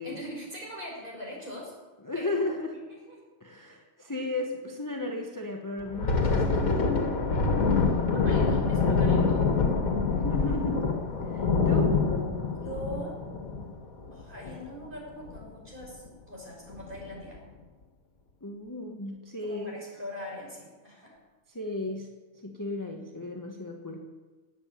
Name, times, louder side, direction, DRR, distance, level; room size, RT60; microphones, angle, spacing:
voice 1, 0.0-1.7 2.1-2.5 2.9-3.2 8.1-9.5 12.6-13.1 14.1-17.4 19.4-21.2, left 1 dB, 35° right, -3 dB, 5.7 m, -41 dB
voice 2, 2.0-2.8 3.4-7.2 10.1-10.9 11.2-12.0 18.4-19.9 21.5-22.1 22.4-24.1, left 2 dB, 15° left, 2 dB, 1.2 m, -35 dB
Thunder, 5.8-14.9 15.2-15.4 15.8-16.1 16.7-17.2, left 4 dB, 85° left, 2.1 m, -26 dB
18.0 x 7.7 x 8.7 m, 1.3 s
omnidirectional pair, 1.5 m